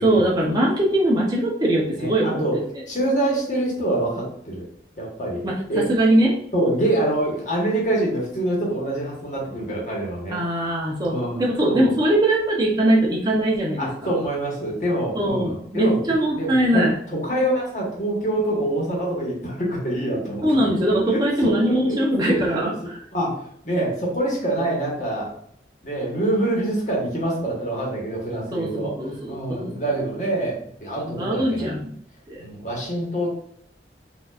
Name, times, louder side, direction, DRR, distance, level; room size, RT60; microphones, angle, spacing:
voice 1, 0.0-2.4 5.4-6.4 10.3-14.1 15.1-16.9 20.4-22.7 28.5-29.7 31.0-31.9 32.3-32.4, right 1 dB, 25° right, -2 dB, 0.8 m, -21 dB
voice 2, 2.0-2.6 2.9-4.6 5.0-5.9 6.5-10.4 11.1-11.9 13.8-22.0 22.3-22.7 23.1-23.3 23.6-25.3 25.8-28.9 29.3-31.7 32.4-33.3, right 1 dB, 45° left, -3 dB, 1.3 m, -25 dB
4.5 x 2.7 x 2.5 m, 0.67 s
head